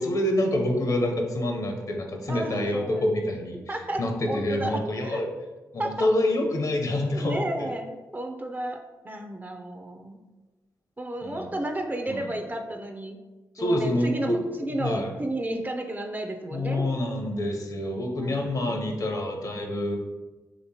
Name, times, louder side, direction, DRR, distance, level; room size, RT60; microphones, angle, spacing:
voice 1, 0.0-5.3 5.7-7.7 11.2-11.5 12.1-12.3 13.5-14.4 14.8-15.1 16.5-20.0, left 1 dB, 50° left, 2 dB, 0.6 m, -27 dB
voice 2, 2.3-3.1 3.7-4.0 4.3-4.8 5.0-5.2 5.8-6.1 7.1-8.8 9.0-10.2 11.0-13.2 13.6-16.9 18.1-19.1, right 1 dB, 25° right, 4 dB, 0.4 m, -32 dB
3.1 x 2.9 x 2.7 m, 1.2 s
supercardioid pair, 40°, 8 cm